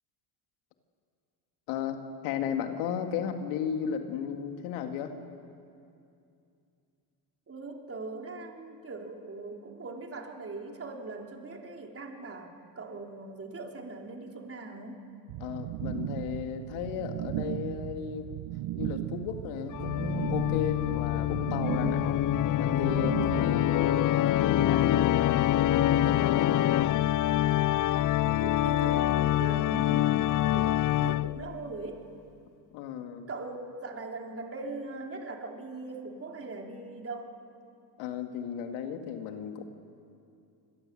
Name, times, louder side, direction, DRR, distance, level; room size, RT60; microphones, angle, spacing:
voice 1, 2.2-5.1 15.4-18.3 18.8-22.2 22.6-26.6 32.7-33.3 38.0-39.6, left 8 dB, 80° left, 5 dB, 2.6 m, -34 dB
voice 2, 7.5-15.0 28.2-32.0 33.3-37.3, right 3 dB, 30° right, 1 dB, 4.0 m, -41 dB
sound 1, 15.3-23.8, right 15 dB, 55° right, 0.8 m, -36 dB
Organ, 19.7-31.6, left 13 dB, 40° left, 0.5 m, -26 dB
28.5 x 21.5 x 7.9 m, 2.6 s
supercardioid pair, 80°, 48 cm